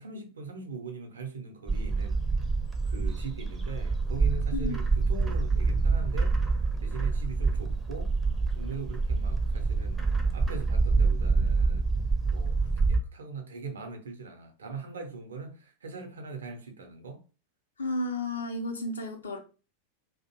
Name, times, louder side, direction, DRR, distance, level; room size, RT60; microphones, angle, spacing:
voice 1, 0.0-2.2 2.9-6.4 6.8-8.1 8.5-10.0 10.3-11.9 12.3-17.2, right 4 dB, 65° right, 0.5 m, -41 dB
Bird, 1.7-13.0, right 4 dB, 10° right, 0.4 m, -26 dB
voice 2, 17.8-19.4, left 2 dB, 70° left, 0.5 m, -32 dB
2.4 x 2.1 x 2.8 m
figure-of-eight pair, 90°, 0 cm